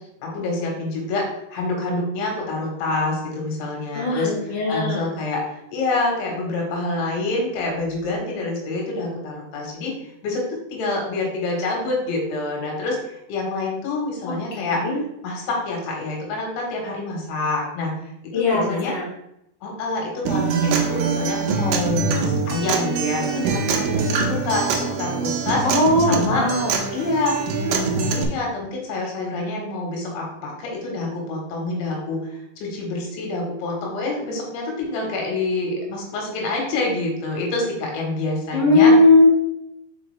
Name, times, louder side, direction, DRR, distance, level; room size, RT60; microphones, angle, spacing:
voice 1, 0.2-9.9 10.2-14.9 15.2-17.9 18.2-18.9 19.6-25.7 26.1-26.4 26.9-27.4 27.7-38.9, left 2 dB, 80° left, 0 dB, 3.7 m, -27 dB
voice 2, 3.9-5.1 14.2-15.0 18.3-19.0 25.6-26.8 38.5-39.3, left 2 dB, 40° left, -7 dB, 2.0 m, -18 dB
Acoustic guitar, 20.3-28.2, right 5 dB, 85° right, 2.1 m, -24 dB
6.2 x 4.9 x 3.3 m, 0.81 s
omnidirectional pair, 5.3 m